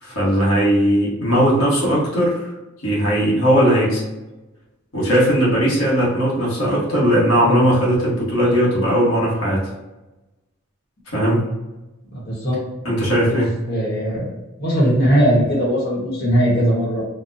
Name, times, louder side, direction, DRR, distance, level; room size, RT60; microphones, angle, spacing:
voice 1, 0.0-2.5 2.8-4.0 4.9-9.7 11.1-11.4 12.8-13.5, equal, 80° left, -6 dB, 1.2 m, -18 dB
voice 2, 12.1-12.6 13.1-13.4 13.7-14.3 14.6-17.0, equal, 50° left, -6 dB, 1.2 m, -19 dB
4.0 x 2.2 x 2.6 m, 1.0 s
head